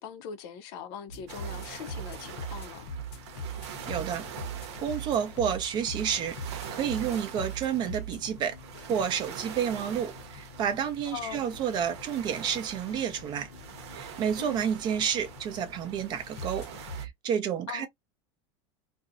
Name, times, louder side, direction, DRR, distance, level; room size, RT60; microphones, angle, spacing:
voice 1, 0.0-2.9 11.1-11.4 14.4-14.7 17.7-17.9, left 8 dB, 55° left, 0.5 m, -41 dB
sound 1, 1.1-17.1, right 1 dB, 80° left, 0.7 m, -42 dB
sound 2, 1.3-17.1, right 9 dB, 85° right, 0.7 m, -44 dB
voice 2, 3.9-4.2 4.8-6.4 6.7-8.6 8.9-13.5 13.9-16.7 17.0-17.9, right 8 dB, 30° right, 0.5 m, -30 dB
2.5 x 2.0 x 2.4 m
supercardioid pair, 155°, 14 cm